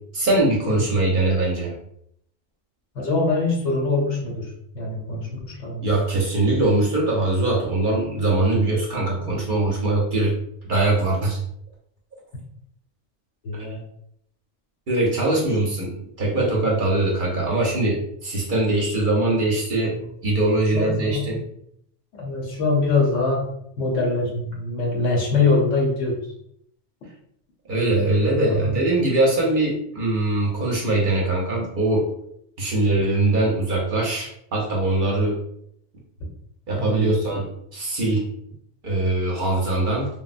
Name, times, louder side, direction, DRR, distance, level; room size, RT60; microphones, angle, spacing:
voice 1, 0.1-1.7 5.8-10.3 10.7-11.4 14.9-21.4 27.7-32.1 32.6-35.4 36.7-38.2 38.8-40.1, right 2 dB, 50° right, -2 dB, 0.7 m, -22 dB
voice 2, 2.9-4.5 4.7-5.9 13.4-13.8 20.7-21.4 22.1-23.5 23.8-26.2 28.3-28.8 36.8-37.1, left 3 dB, 85° left, -2 dB, 1.2 m, -23 dB
3.4 x 2.0 x 2.4 m, 0.72 s
omnidirectional pair, 1.2 m